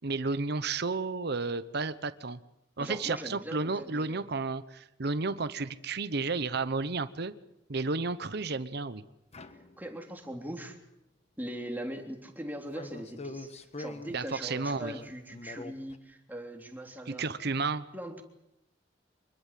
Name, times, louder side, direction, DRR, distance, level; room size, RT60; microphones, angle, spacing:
voice 1, 0.0-2.4 2.8-7.3 7.7-9.0 14.1-14.9 17.1-17.8, right 3 dB, 60° right, 13 dB, 1.0 m, -32 dB
voice 2, 2.8-4.2 9.8-10.8 11.4-17.5 17.9-18.2, right 1 dB, 10° right, 3 dB, 3.4 m, -41 dB
sound 1, 9.3-10.3 12.7-16.0, left 2 dB, 35° left, 1.3 m, -44 dB
25.5 x 21.5 x 7.6 m, 0.84 s
head